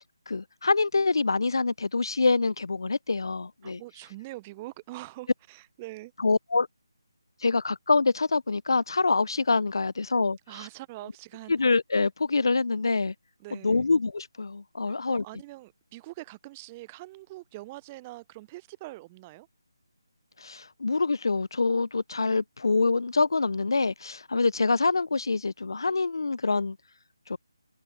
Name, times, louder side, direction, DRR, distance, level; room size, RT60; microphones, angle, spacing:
voice 1, 0.3-3.8 6.2-6.7 7.4-10.4 11.5-13.1 13.6-15.2 20.4-26.8 27.3-27.4, left 3 dB, 65° left, 0.3 m, -25 dB
voice 2, 3.6-6.1 10.5-11.6 13.4-13.9 14.9-19.5, right 19 dB, 20° right, 0.5 m, -43 dB
figure-of-eight pair, 155°, 2 cm